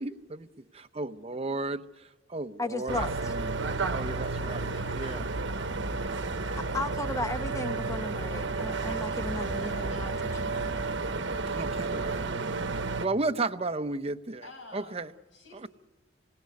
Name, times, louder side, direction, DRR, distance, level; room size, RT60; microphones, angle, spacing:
voice 1, 0.0-1.8 2.3-4.7 4.9-5.2 11.5-14.4 14.7-15.1 15.6-15.7, right 3 dB, 35° right, 0.9 m, -34 dB
voice 2, 2.6-3.3 6.7-10.5, left 2 dB, 15° left, 1.3 m, -35 dB
sound 1, 2.9-13.1, right 3 dB, 70° right, 1.2 m, -32 dB
voice 3, 4.4-5.7 8.9-10.9 14.4-15.7, left 2 dB, 75° left, 8.0 m, -50 dB
27.5 x 18.0 x 9.6 m
head